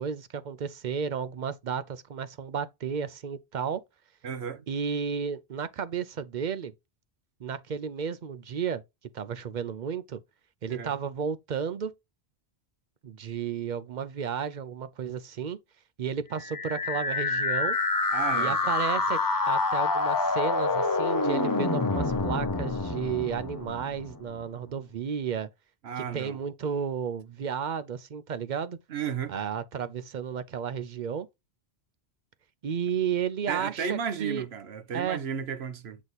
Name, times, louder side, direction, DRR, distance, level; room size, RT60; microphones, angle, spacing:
voice 1, 0.0-3.8 4.7-6.7 7.4-8.8 9.1-10.2 10.6-11.9 13.0-15.6 16.0-17.8 18.3-19.2 19.5-25.5 26.0-28.8 29.3-31.3 32.6-34.4 34.9-35.2, right 7 dB, 50° right, 0.6 m, -33 dB
voice 2, 4.2-4.7 10.7-10.9 18.1-18.7 25.8-26.4 28.9-29.3 33.5-36.0, right 7 dB, 75° right, 1.0 m, -33 dB
sound 1, 16.4-24.3, left 3 dB, 30° left, 0.4 m, -27 dB
8.0 x 3.0 x 4.1 m
omnidirectional pair, 1.1 m